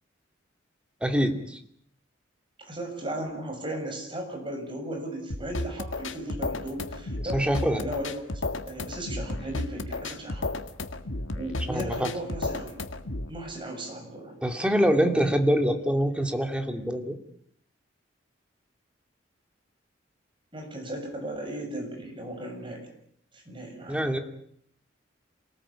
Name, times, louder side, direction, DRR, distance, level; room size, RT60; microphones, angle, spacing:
voice 1, 1.0-1.6 7.3-7.8 11.7-12.1 14.4-17.2 23.9-24.2, equal, 5° right, 5 dB, 2.6 m, -25 dB
voice 2, 2.6-8.3 8.7-10.6 11.3-12.8 13.3-14.4 20.5-22.9 23.3-24.0, right 1 dB, 25° right, 3 dB, 7.1 m, -36 dB
sound 1, 5.3-13.3, left 2 dB, 85° left, 1.8 m, -33 dB
27.5 x 19.0 x 8.7 m, 0.69 s
head